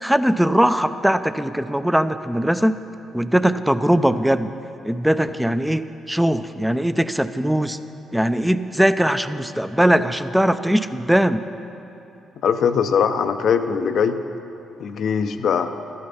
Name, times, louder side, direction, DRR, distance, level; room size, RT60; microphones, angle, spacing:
voice 1, 0.0-2.8 3.1-4.5 4.8-7.8 8.1-11.4, equal, 5° right, 12 dB, 0.6 m, -20 dB
voice 2, 12.4-14.2 14.8-15.7, left 7 dB, 60° left, 9 dB, 0.6 m, -21 dB
13.0 x 9.5 x 5.7 m, 2.9 s
hypercardioid pair, 40°, 0 cm